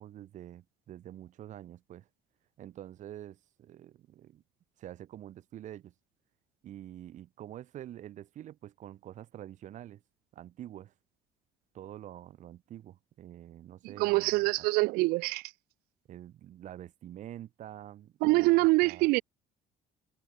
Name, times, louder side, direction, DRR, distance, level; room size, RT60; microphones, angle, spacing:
voice 1, 0.0-2.1 2.6-4.4 4.8-5.9 6.6-10.0 10.3-10.9 11.7-14.7 16.1-19.1, right 12 dB, 55° right, 1.8 m, -47 dB
voice 2, 14.0-15.4 18.2-19.2, right 24 dB, 85° right, 0.9 m, -25 dB
cardioid pair, 125°, 15 cm